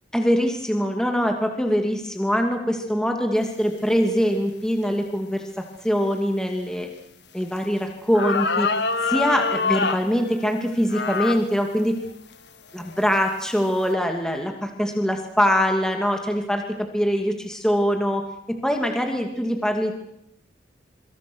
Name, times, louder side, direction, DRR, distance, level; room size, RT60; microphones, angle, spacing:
voice 1, 0.1-6.9 7.3-8.7 9.0-12.0 12.7-16.6 16.9-19.9, equal, 5° left, 3 dB, 2.5 m, -23 dB
sound 1, 7.6-7.7 8.1-10.1 10.9-11.4 12.1-12.2 12.9-13.2, left 4 dB, 65° left, 1.7 m, -24 dB
26.5 x 25.5 x 6.3 m, 0.76 s
head